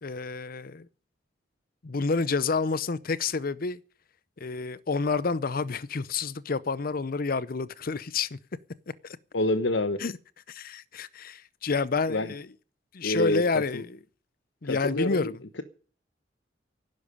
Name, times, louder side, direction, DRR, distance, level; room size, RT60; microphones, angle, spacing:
voice 1, 0.0-0.9 1.8-3.8 4.4-8.4 9.0-9.2 10.0-10.1 10.5-12.5 12.9-13.9 14.6-15.4, left 4 dB, 55° left, 0.6 m, -29 dB
voice 2, 9.3-10.0 12.1-12.3 13.0-13.4 13.7-13.8 14.6-15.3, left 2 dB, 80° left, 1.2 m, -27 dB
12.0 x 10.5 x 10.0 m
head